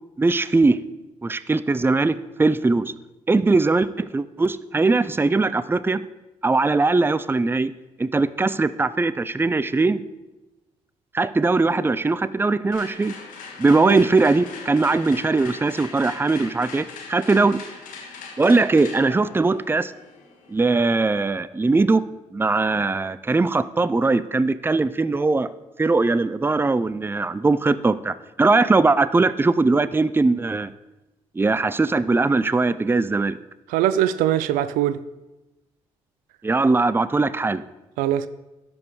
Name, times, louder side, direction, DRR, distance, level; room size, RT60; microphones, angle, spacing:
voice 1, 0.2-0.8 1.2-2.9 3.3-6.0 6.4-7.7 8.0-10.0 11.1-13.1 13.6-17.6 18.4-19.9 20.5-22.0 22.3-25.5 25.8-30.7 31.4-33.4 36.4-37.6, right 3 dB, 15° right, 0.5 m, -20 dB
sound 1, 12.7-20.7, left 5 dB, 80° left, 1.4 m, -40 dB
voice 2, 33.7-35.0 38.0-38.3, right 11 dB, 85° right, 0.4 m, -21 dB
12.0 x 5.3 x 4.7 m
supercardioid pair, 55°, 14 cm